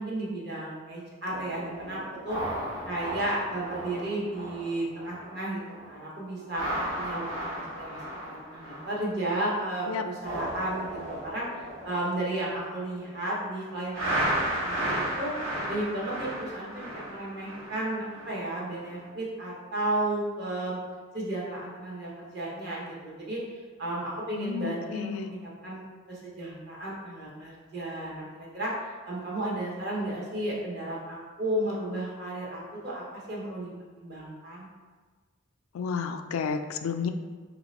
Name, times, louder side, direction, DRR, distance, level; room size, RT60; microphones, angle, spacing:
voice 1, 0.0-2.4 2.8-5.6 5.9-6.6 6.9-11.4 11.8-15.3 15.7-20.8 21.1-23.4 23.8-28.7 29.0-33.7 34.0-34.7, right 1 dB, 50° right, -5 dB, 1.0 m, -33 dB
sound 1, 1.3-5.4 5.7-6.0 6.4-9.6 10.0-13.2 13.9-18.4 18.8-19.1, right 1 dB, 75° right, 1.2 m, -35 dB
voice 2, 24.4-25.3 35.7-37.1, left 6 dB, 90° left, 8 dB, 0.3 m, -31 dB
3.3 x 2.8 x 4.1 m, 1.4 s
head